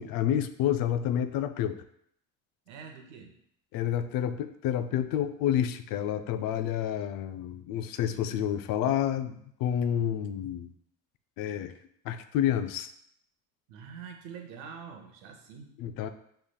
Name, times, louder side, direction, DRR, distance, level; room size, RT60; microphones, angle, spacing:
voice 1, 0.0-1.8 3.7-10.7 11.4-11.7 12.0-12.9 15.8-16.1, left 10 dB, 60° left, 10 dB, 0.5 m, -29 dB
voice 2, 2.7-3.3 13.7-15.7, right 6 dB, 85° right, 4 dB, 0.9 m, -45 dB
5.6 x 3.3 x 2.2 m, 0.70 s
hypercardioid pair, 75°, 38 cm